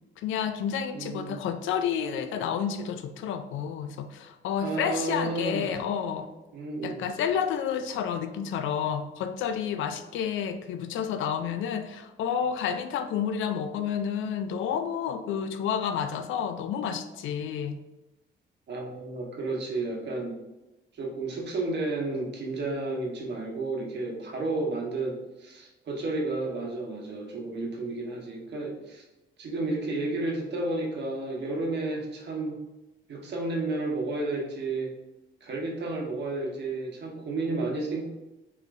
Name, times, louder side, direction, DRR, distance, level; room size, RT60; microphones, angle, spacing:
voice 1, 0.2-6.3 6.8-17.8, left 8 dB, 80° left, 9 dB, 0.4 m, -30 dB
voice 2, 0.9-1.4 4.6-5.7 6.5-7.0 18.7-20.4 20.9-29.0 29.4-32.6 33.1-34.9 35.4-38.0, right 2 dB, 60° right, -1 dB, 1.1 m, -32 dB
4.6 x 2.8 x 2.5 m, 1.0 s
cardioid pair, 90°, 20 cm